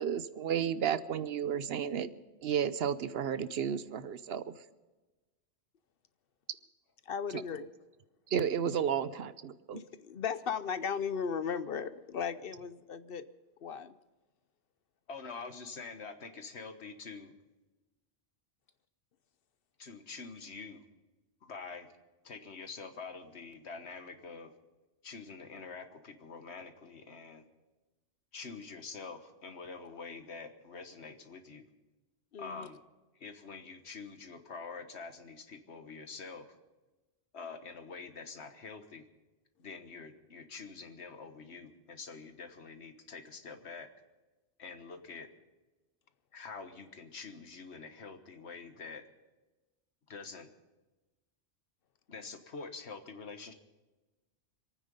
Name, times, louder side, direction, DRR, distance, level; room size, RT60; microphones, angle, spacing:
voice 1, 0.0-2.1 2.4-4.5 8.3-9.8, right 8 dB, 70° right, 14 dB, 0.9 m, -32 dB
voice 2, 7.1-7.7 9.7-13.3 13.6-13.9 32.3-32.7, left 6 dB, 60° left, 13 dB, 0.9 m, -36 dB
voice 3, 15.1-17.3 19.8-20.8 21.4-21.9 22.2-24.5 25.0-27.4 28.3-31.7 32.4-32.8 33.1-36.5 37.3-39.0 39.6-43.9 44.6-45.3 46.3-49.0 50.1-50.5 52.1-53.5, left 4 dB, 80° left, 7 dB, 1.6 m, -46 dB
26.5 x 9.5 x 5.4 m, 1.2 s
omnidirectional pair, 1.1 m